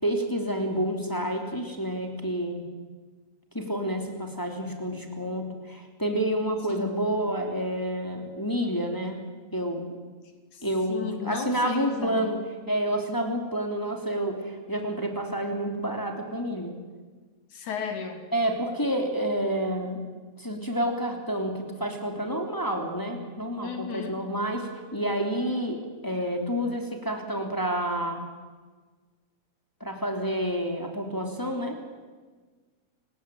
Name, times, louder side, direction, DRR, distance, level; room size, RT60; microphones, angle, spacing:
voice 1, 0.0-2.6 3.5-9.2 9.5-9.8 10.6-16.7 18.3-20.0 20.4-28.3 29.8-31.8, right 1 dB, 5° left, 3 dB, 3.0 m, -29 dB
voice 2, 6.7-7.1 10.5-12.3 17.5-18.2 23.6-24.2, left 6 dB, 90° left, 6 dB, 4.3 m, -35 dB
29.5 x 18.0 x 9.2 m, 1.4 s
omnidirectional pair, 3.3 m